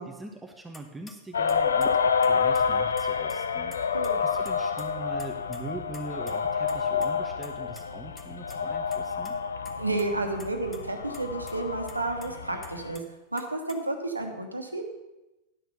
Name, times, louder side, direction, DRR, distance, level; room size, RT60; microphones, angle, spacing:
voice 1, 0.0-9.4, right 3 dB, 5° right, 1 dB, 1.0 m, -42 dB
sound 1, 0.7-1.1 1.5-2.6 3.0-3.8 4.0-4.1 4.4-4.9 5.1-5.6 5.9-7.1 7.4-7.8 8.2-8.3 8.5-8.6 8.9-9.3 9.6-10.1 10.4-10.8 11.1-11.2 11.5-11.6 11.9-13.0 13.4-13.8, left 2 dB, 10° left, 1.2 m, -46 dB
sound 2, 1.3-13.0, left 6 dB, 70° left, 0.5 m, -28 dB
voice 2, 3.9-4.2 9.8-13.0 13.3-14.8, right 2 dB, 85° right, 5 dB, 1.2 m, -31 dB
10.5 x 6.1 x 6.7 m, 1.0 s
figure-of-eight pair, 90°, 0 cm